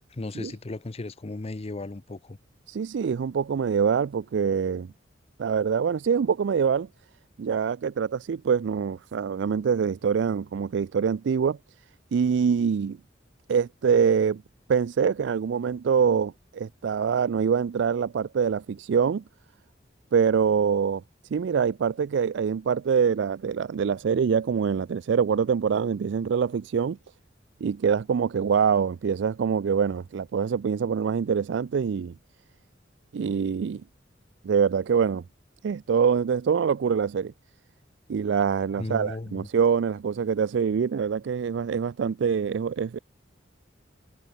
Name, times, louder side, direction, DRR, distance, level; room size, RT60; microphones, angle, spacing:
voice 1, 0.1-2.4 38.8-39.5, left 2 dB, 35° left, 0.7 m, -35 dB
voice 2, 2.7-4.9 5.4-6.9 7.4-11.6 12.1-13.0 13.5-14.4 14.7-19.2 20.1-21.0 21.3-27.0 27.6-32.1 33.1-33.8 34.4-35.2 35.6-37.3 38.1-43.0, right 6 dB, 70° right, 0.4 m, -24 dB
head